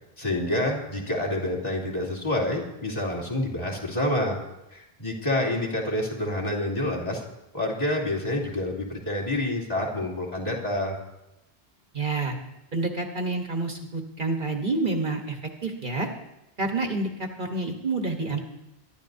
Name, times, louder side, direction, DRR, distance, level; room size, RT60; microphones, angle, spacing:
voice 1, 0.2-4.4 4.7-7.2 7.5-11.0, left 1 dB, 35° left, -3 dB, 3.0 m, -28 dB
voice 2, 11.9-12.4 12.7-16.1 16.6-18.4, right 3 dB, 50° right, 3 dB, 1.3 m, -28 dB
22.5 x 12.0 x 2.7 m, 0.93 s
omnidirectional pair, 1.1 m